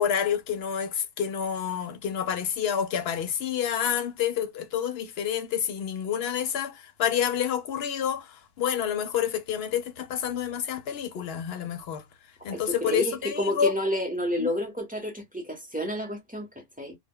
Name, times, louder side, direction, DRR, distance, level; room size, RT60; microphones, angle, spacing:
voice 1, 0.0-12.0 12.4-13.7 14.4-14.5, left 8 dB, 65° left, 0.8 m, -28 dB
voice 2, 12.5-17.0, equal, 10° right, 0.6 m, -30 dB
2.2 x 2.1 x 3.5 m
omnidirectional pair, 1.2 m